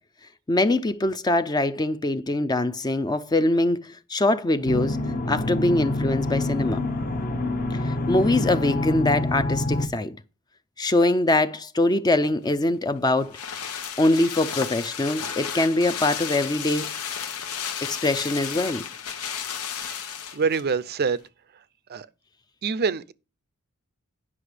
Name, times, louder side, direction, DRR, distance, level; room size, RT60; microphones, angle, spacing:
voice 1, 0.5-5.0 5.3-6.8 7.8-10.2 10.8-13.4 14.0-16.9 17.8-18.8, left 2 dB, 20° left, 0.4 m, -23 dB
sound 1, 4.7-9.9, left 2 dB, 40° left, 0.9 m, -26 dB
sound 2, 12.5-20.7 21.0-21.1, left 8 dB, 90° left, 1.1 m, -33 dB
voice 2, 20.3-21.2 21.9-22.1 22.6-23.1, right 5 dB, 45° right, 0.5 m, -25 dB
9.8 x 5.9 x 5.0 m
head